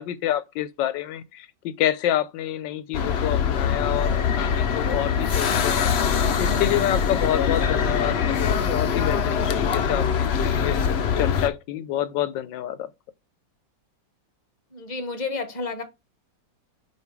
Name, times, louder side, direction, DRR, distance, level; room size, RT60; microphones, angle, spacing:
voice 1, 0.0-5.9 6.4-10.9 11.2-12.9, left 12 dB, 85° left, 1.3 m, -28 dB
sound 1, 2.9-11.5, left 7 dB, 60° left, 0.7 m, -23 dB
voice 2, 14.7-15.8, left 4 dB, 30° left, 0.9 m, -30 dB
5.5 x 4.6 x 4.7 m
omnidirectional pair, 2.0 m